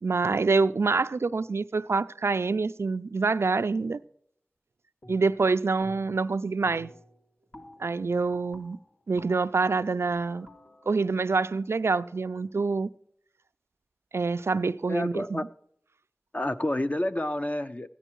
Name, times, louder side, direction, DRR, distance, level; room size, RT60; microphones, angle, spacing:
voice 1, 0.0-4.0 5.1-6.9 7.8-8.8 9.1-10.5 10.9-12.9 14.1-15.5, right 4 dB, 85° right, 0.4 m, -26 dB
sound 1, 5.0-5.5 5.8-6.3 6.6-12.4, left 1 dB, 60° left, 2.5 m, -52 dB
voice 2, 14.9-15.4 16.3-17.9, left 1 dB, 35° left, 0.6 m, -29 dB
13.5 x 9.9 x 4.6 m
wide cardioid pair, 45°, 4 cm